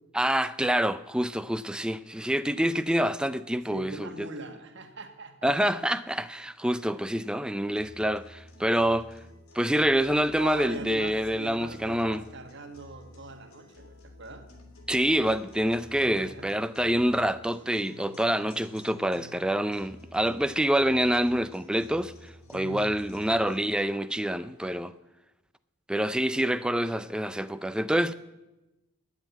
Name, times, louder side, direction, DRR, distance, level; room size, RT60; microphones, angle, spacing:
voice 1, 0.1-4.3 5.4-9.1 9.5-12.2 14.9-24.9 25.9-28.1, equal, 5° right, 0.4 m, -26 dB
voice 2, 3.7-5.5 6.9-7.0 10.3-14.5 15.9-16.5 22.5-22.9, right 2 dB, 55° right, 1.9 m, -42 dB
sound 1, 7.7-23.7, equal, 70° left, 3.1 m, -51 dB
20.0 x 7.7 x 9.3 m
head